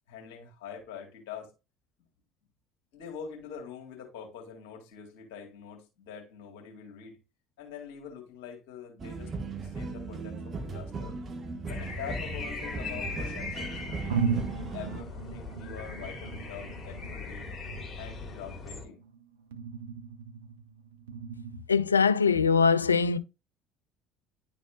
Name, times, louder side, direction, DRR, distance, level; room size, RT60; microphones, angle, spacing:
voice 1, 0.1-1.5 2.9-7.2 7.6-9.3 9.6-11.1 11.7-17.5 18.0-19.0, left 7 dB, 70° left, 2.0 m, -44 dB
sound 1, 9.0-15.0, right 3 dB, 40° right, 1.2 m, -38 dB
sound 2, 11.7-18.8, left 3 dB, 30° left, 2.4 m, -39 dB
sound 3, 12.6-13.0 13.6-13.7 14.1-21.6, right 6 dB, 80° right, 0.6 m, -37 dB
voice 2, 21.7-23.2, left 5 dB, 90° left, 0.3 m, -22 dB
11.0 x 4.1 x 2.3 m
figure-of-eight pair, 60°, 0 cm